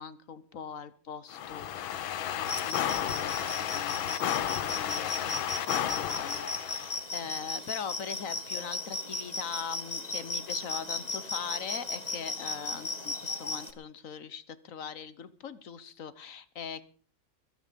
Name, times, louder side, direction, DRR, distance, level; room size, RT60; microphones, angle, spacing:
voice 1, 0.0-1.8 2.0-16.8, left 7 dB, 50° left, 15 dB, 1.2 m, -41 dB
sound 1, 1.3-7.0, left 10 dB, 90° left, 1.8 m, -32 dB
sound 2, 2.4-13.7, left 2 dB, 20° left, 1.6 m, -36 dB
22.0 x 9.7 x 5.3 m, 0.42 s
omnidirectional pair, 2.2 m